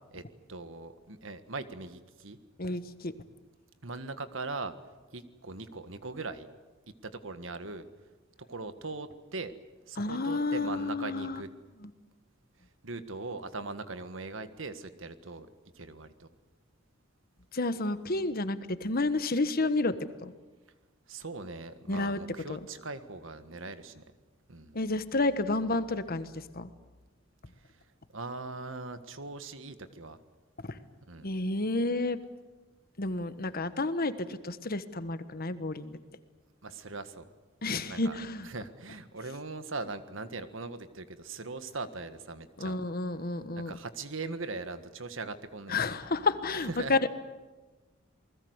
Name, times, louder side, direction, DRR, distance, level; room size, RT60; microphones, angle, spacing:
voice 1, 0.5-2.4 3.8-4.7 5.1-6.5 7.0-7.9 8.4-9.5 9.9-11.5 12.8-15.5 15.7-16.3 21.1-24.0 24.5-24.8 27.6-27.7 28.1-30.2 31.0-31.3 36.6-37.3 37.9-38.2 38.4-42.8 43.5-45.8 46.6-47.0, right 3 dB, 70° right, 10 dB, 1.6 m, -40 dB
voice 2, 2.6-3.1 10.0-11.4 17.5-19.9 20.2-20.3 21.9-22.2 22.5-22.6 24.7-26.7 30.7-30.8 31.2-32.2 33.0-36.0 37.6-38.5 42.6-43.7 45.7-47.1, left 2 dB, 50° left, 11 dB, 1.3 m, -30 dB
28.5 x 20.0 x 8.1 m, 1.2 s
head